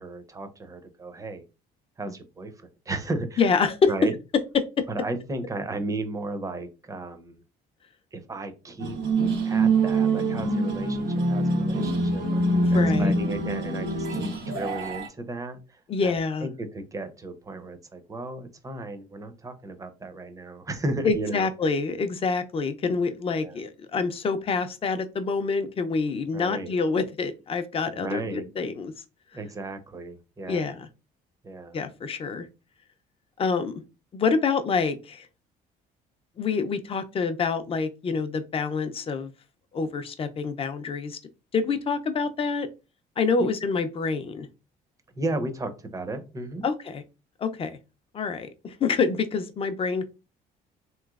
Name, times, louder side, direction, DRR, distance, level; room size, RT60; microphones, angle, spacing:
voice 1, 0.0-1.4 2.0-3.5 3.9-4.1 4.9-7.4 8.1-9.0 9.4-16.1 16.4-21.5 23.4-23.6 26.3-26.7 28.0-28.5 29.3-30.7 31.4-31.8 45.1-46.7, right 2 dB, 20° right, 8 dB, 0.6 m, -34 dB
voice 2, 3.4-3.9 12.6-13.1 15.9-16.5 21.0-28.9 30.5-30.9 31.7-32.5 33.4-33.7 34.1-35.3 36.4-39.3 39.7-41.2 41.5-42.7 43.2-44.5 46.6-47.0 47.4-47.8 48.1-50.1, left 4 dB, 35° left, 9 dB, 0.5 m, -26 dB
sound 1, 8.8-15.1, right 2 dB, 85° right, 1.0 m, -24 dB
3.2 x 3.0 x 2.4 m, 0.29 s
cardioid pair, 110°, 17 cm